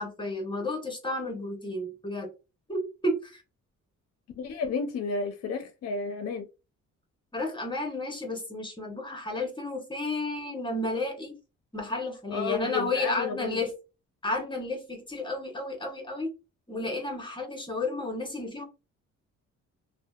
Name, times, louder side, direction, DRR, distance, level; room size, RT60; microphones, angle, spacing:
voice 1, 0.0-2.3 2.7-3.4 7.3-11.3 11.7-13.7 14.2-16.3 16.7-18.6, left 2 dB, 15° left, 0.9 m, -32 dB
voice 2, 4.4-6.5 12.3-13.6, left 4 dB, 55° left, 0.5 m, -32 dB
2.7 x 2.1 x 2.3 m
cardioid pair, 90°, 30 cm